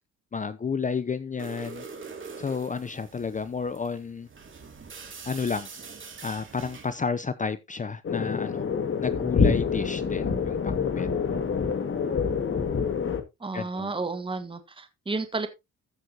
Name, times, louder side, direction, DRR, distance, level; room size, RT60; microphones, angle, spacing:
voice 1, 0.3-1.8 2.4-4.3 5.2-5.7 6.2-8.6 9.0-11.1 13.5-13.9, left 5 dB, 25° left, 0.7 m, -31 dB
sound 1, 1.4-7.0, right 5 dB, 40° right, 2.9 m, -43 dB
sound 2, 8.0-13.2, left 5 dB, 40° left, 2.0 m, -26 dB
voice 2, 13.4-15.5, right 3 dB, 15° right, 1.5 m, -32 dB
14.5 x 6.3 x 2.9 m
cardioid pair, 90°, 30 cm